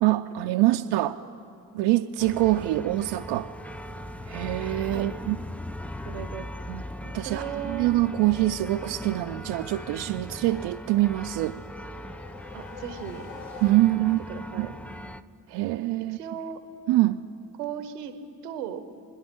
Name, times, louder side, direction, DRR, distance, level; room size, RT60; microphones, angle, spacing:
voice 1, 0.0-1.2 1.7-3.5 4.3-5.4 6.7-6.8 7.1-11.6 13.6-14.2 14.6-14.7 15.5-16.2 16.9-17.2, right 16 dB, 65° right, 6 dB, 0.6 m, -24 dB
sound 1, 2.2-15.2, left 1 dB, 5° left, 0.4 m, -39 dB
voice 2, 6.0-6.5 7.2-7.9 12.5-13.3 14.0-14.7 16.1-16.6 17.6-18.1 18.4-18.8, right 9 dB, 85° right, 9 dB, 1.0 m, -36 dB
sound 2, 11.2-14.3, left 6 dB, 70° left, 0.9 m, -46 dB
29.5 x 10.5 x 3.7 m, 2.7 s
hypercardioid pair, 40°, 46 cm